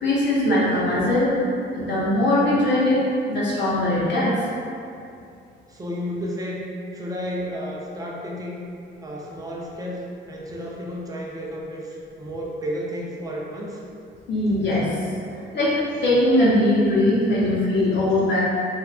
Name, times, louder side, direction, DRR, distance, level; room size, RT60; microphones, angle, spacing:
voice 1, 0.0-1.3 1.7-3.0 3.3-4.3 14.3-14.9 15.5-15.7 16.0-18.4, left 1 dB, 60° left, -8 dB, 0.8 m, -20 dB
voice 2, 5.7-6.6 6.9-8.6 9.0-13.8, equal, 20° right, -3 dB, 0.5 m, -32 dB
3.3 x 2.4 x 2.3 m, 2.6 s
cardioid pair, 90°, 20 cm